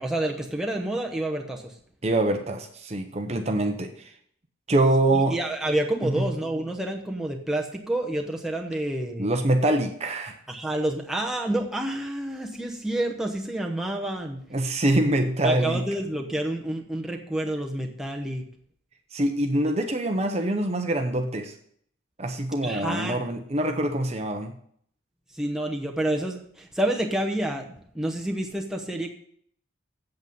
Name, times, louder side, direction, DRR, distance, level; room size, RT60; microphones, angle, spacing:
voice 1, 0.0-1.7 5.1-9.4 10.5-14.4 15.4-18.5 19.6-19.7 22.6-23.2 25.3-29.1, right 1 dB, 5° right, 0 dB, 0.9 m, -29 dB
voice 2, 2.0-4.1 4.7-5.3 6.0-6.2 9.2-10.4 14.5-15.8 19.1-21.5 22.2-24.5, right 1 dB, 30° right, 5 dB, 0.7 m, -24 dB
8.1 x 7.8 x 5.3 m, 0.64 s
head